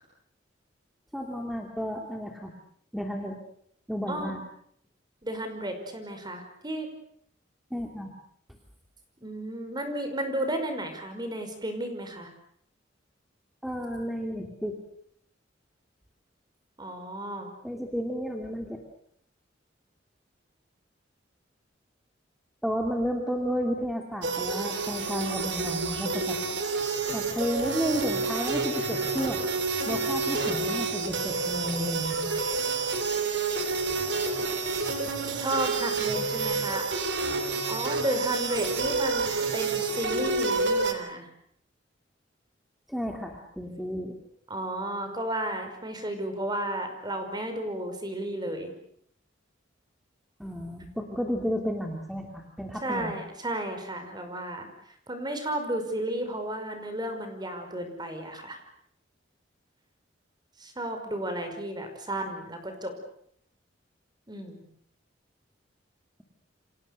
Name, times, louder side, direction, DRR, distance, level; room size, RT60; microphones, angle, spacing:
voice 1, 1.1-2.5 2.9-3.4 3.9-4.4 7.7-8.1 13.6-14.8 17.6-18.8 22.6-26.4 27.1-29.4 29.9-32.3 42.9-44.2 50.4-53.1, equal, ahead, 2 dB, 2.8 m, -32 dB
voice 2, 5.2-6.9 9.2-12.3 16.8-17.5 35.4-37.0 37.7-41.3 44.5-48.7 52.8-54.7 55.1-58.6 60.6-62.9 64.3-64.6, right 1 dB, 25° right, 6 dB, 5.4 m, -33 dB
sound 1, 24.2-40.9, right 3 dB, 65° right, 3.7 m, -29 dB
29.5 x 26.0 x 6.7 m, 0.67 s
head